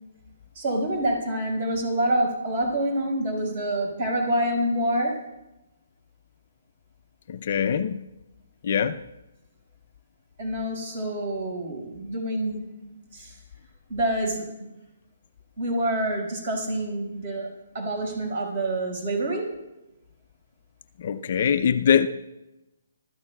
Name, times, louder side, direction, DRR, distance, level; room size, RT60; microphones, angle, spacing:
voice 1, 0.6-5.2 10.4-13.4 13.9-14.5 15.6-19.5, right 1 dB, 40° right, 5.2 m, -27 dB
voice 2, 7.3-8.0 8.6-9.0 21.0-22.1, left 7 dB, 45° left, 0.5 m, -23 dB
20.5 x 13.5 x 2.3 m
hypercardioid pair, 170°, 0 cm